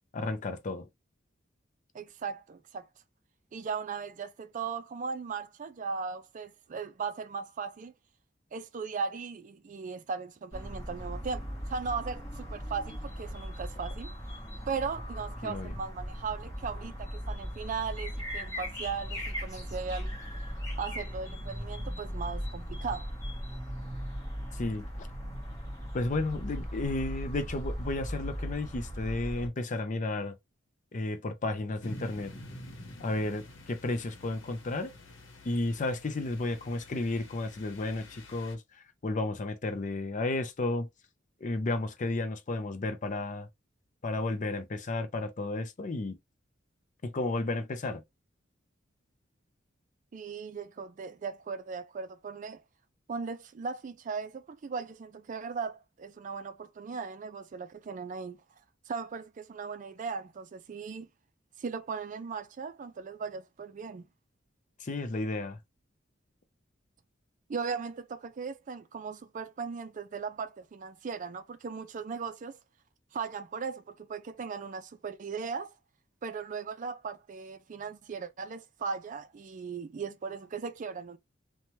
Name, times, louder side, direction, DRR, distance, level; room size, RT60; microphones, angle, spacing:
voice 1, 0.1-0.9 15.4-15.7 24.5-25.1 25.9-30.4 30.9-32.3 33.0-34.9 35.4-38.6 39.0-40.9 41.4-43.5 44.0-46.2 47.0-48.0 64.8-65.6, left 2 dB, 40° left, 0.5 m, -32 dB
voice 2, 1.9-2.9 3.5-7.9 8.5-14.1 14.7-20.2 20.8-23.1 50.1-52.6 53.1-58.4 58.9-61.1 61.6-64.1 67.5-72.6 73.1-75.7 76.2-81.2, right 5 dB, 40° right, 0.4 m, -38 dB
sound 1, 10.5-29.5, equal, 15° left, 1.1 m, -38 dB
sound 2, 31.8-38.6, left 1 dB, 80° left, 0.9 m, -48 dB
2.8 x 2.2 x 3.0 m
head